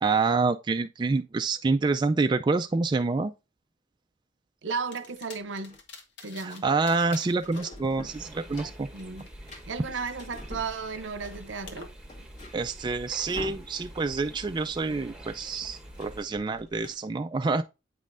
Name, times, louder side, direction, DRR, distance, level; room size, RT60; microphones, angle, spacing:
voice 1, 0.0-3.3 6.4-8.9 12.5-17.6, right 3 dB, 25° right, 0.3 m, -27 dB
voice 2, 4.6-5.8 6.2-6.7 8.9-11.9, right 5 dB, 70° right, 0.7 m, -35 dB
sound 1, 4.9-6.6 6.9-9.6 10.0-11.9, left 4 dB, 65° left, 1.3 m, -48 dB
sound 2, 5.0-5.8 7.0-8.4 8.7-11.2 11.6-11.7 11.9-14.2 14.4-14.6 14.9-16.9, left 1 dB, 40° left, 1.5 m, -47 dB
sound 3, 8.0-16.2, right 1 dB, 5° right, 1.0 m, -47 dB
8.4 x 5.3 x 2.5 m
head